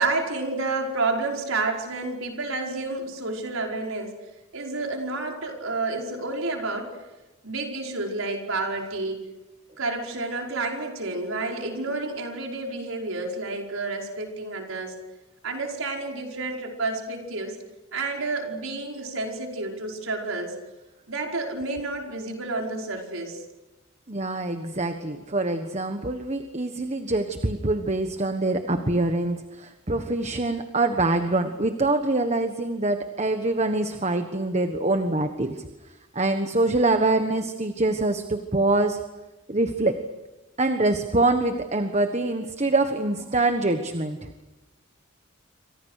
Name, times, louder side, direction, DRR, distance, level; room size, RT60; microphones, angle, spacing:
voice 1, 0.0-4.2 4.5-6.9 7.4-9.2 9.8-15.0 15.4-17.6 17.9-20.5 21.1-23.4, right 3 dB, 80° right, 1 dB, 5.2 m, -30 dB
voice 2, 24.1-35.5 36.1-39.0 39.5-40.0 40.6-44.3, right 2 dB, 30° right, 7 dB, 1.4 m, -24 dB
28.5 x 26.0 x 6.6 m, 1.1 s
head